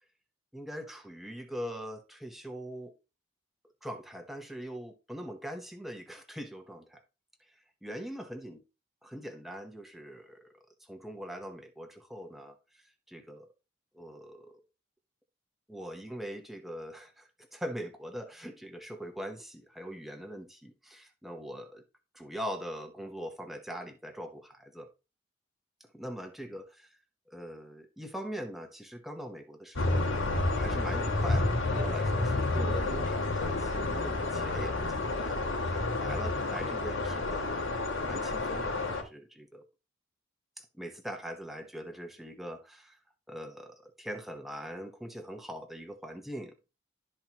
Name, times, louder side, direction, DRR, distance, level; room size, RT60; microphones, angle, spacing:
voice 1, 0.5-2.9 3.8-7.0 7.8-8.6 9.0-10.4 10.8-13.5 13.9-14.6 15.7-21.8 22.1-24.9 25.8-27.0 27.3-30.1 30.5-37.7 38.0-39.6 40.6-43.0 43.3-46.7, equal, ahead, 1.0 m, -42 dB
sound 1, 29.8-39.0, left 2 dB, 85° left, 2.4 m, -30 dB
12.5 x 4.4 x 2.9 m
head